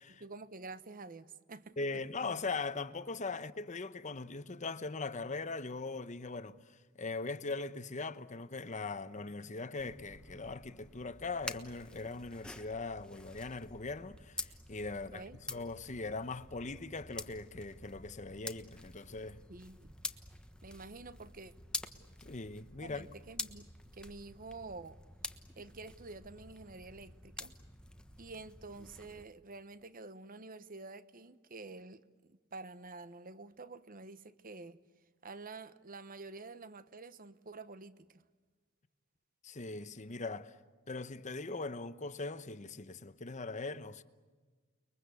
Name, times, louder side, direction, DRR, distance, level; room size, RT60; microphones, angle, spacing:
voice 1, 0.1-1.8 15.1-15.4 19.5-20.0 20.6-21.5 22.8-25.0 25.6-27.5 28.2-34.8 35.2-38.2, right 3 dB, 40° right, 1.0 m, -49 dB
voice 2, 1.8-19.4 22.2-23.1 39.4-40.6 40.9-44.0, left 3 dB, 35° left, 1.0 m, -40 dB
sound 1, 9.8-29.2, left 2 dB, 5° left, 1.2 m, -48 dB
30.0 x 22.5 x 8.3 m
head